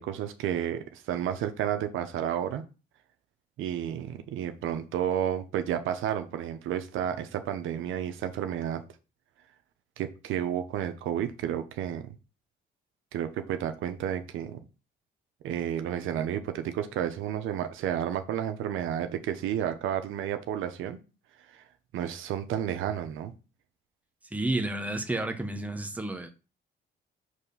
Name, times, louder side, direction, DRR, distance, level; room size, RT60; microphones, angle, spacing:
voice 1, 0.0-2.6 3.6-8.8 10.0-12.1 13.1-14.6 15.4-21.0 21.5-21.6 21.9-23.3, right 10 dB, 85° right, 0.8 m, -31 dB
voice 2, 24.3-26.3, right 2 dB, 5° right, 1.1 m, -31 dB
6.5 x 3.3 x 5.5 m
cardioid pair, 90°, 20 cm